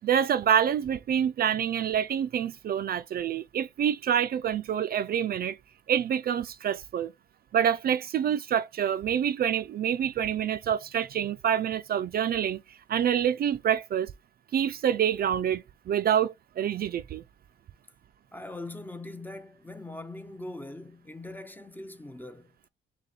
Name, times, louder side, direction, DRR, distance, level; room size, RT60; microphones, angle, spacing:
voice 1, 0.0-5.6 5.9-7.1 7.5-14.1 14.5-17.2, right 9 dB, 50° right, 0.4 m, -27 dB
voice 2, 18.3-22.5, left 2 dB, 10° left, 0.5 m, -41 dB
3.4 x 2.8 x 3.9 m
cardioid pair, 90°, 20 cm